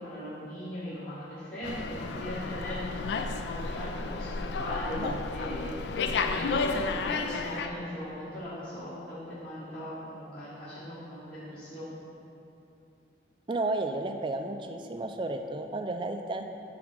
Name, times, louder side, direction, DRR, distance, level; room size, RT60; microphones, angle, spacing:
voice 1, 0.0-2.8 3.4-5.7 6.2-12.0, equal, 50° left, -13 dB, 1.6 m, -39 dB
Slam, 1.6-7.7, left 4 dB, 70° left, 0.3 m, -32 dB
voice 2, 13.5-16.4, right 2 dB, 25° right, 6 dB, 0.3 m, -32 dB
9.1 x 3.5 x 4.8 m, 2.8 s
head